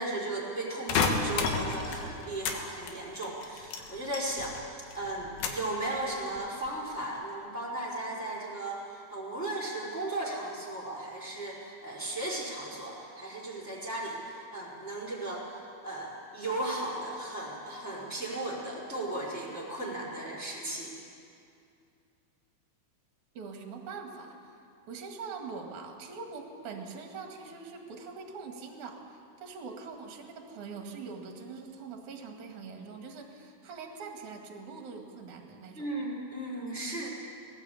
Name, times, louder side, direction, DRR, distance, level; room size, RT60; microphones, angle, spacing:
voice 1, 0.0-20.9 35.7-37.1, right 2 dB, 5° left, -5 dB, 4.0 m, -36 dB
sound 1, 0.9-2.6 2.9-4.6 4.9-5.7 6.2-6.7, left 5 dB, 70° left, 3.2 m, -31 dB
voice 2, 23.3-24.6 24.9-35.8, right 4 dB, 55° right, 3 dB, 3.1 m, -43 dB
19.5 x 18.0 x 8.6 m, 2.5 s
omnidirectional pair, 4.7 m